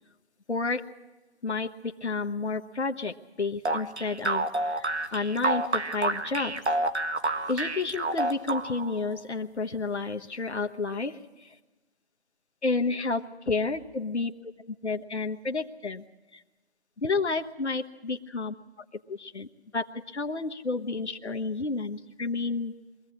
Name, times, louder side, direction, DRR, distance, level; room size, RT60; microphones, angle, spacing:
voice 1, 0.5-0.9 1.4-6.6 7.5-11.6 12.6-14.3 14.7-16.0 16.3-16.4 17.0-19.5 19.7-22.7, left 3 dB, 85° left, 3 dB, 1.2 m, -31 dB
sound 1, 3.7-9.0, right 2 dB, 85° right, 1.7 m, -28 dB
23.5 x 16.0 x 8.5 m, 1.2 s
figure-of-eight pair, 175°, 33 cm